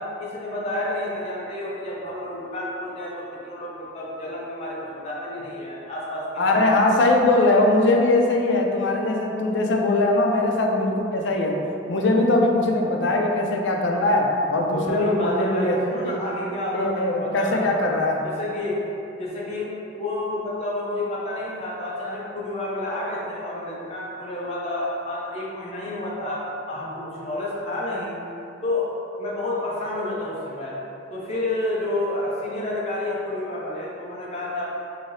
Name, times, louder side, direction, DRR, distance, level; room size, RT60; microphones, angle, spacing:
voice 1, 0.0-7.1 14.7-17.9 18.2-18.8 19.2-28.2 28.6-28.9 29.2-30.8 31.1-34.8, left 1 dB, 35° left, -6 dB, 0.7 m, -30 dB
voice 2, 6.4-11.6 11.9-15.8 16.1-16.2 16.7-18.2, left 2 dB, 90° left, 1 dB, 0.4 m, -21 dB
4.0 x 2.7 x 3.2 m, 2.8 s
head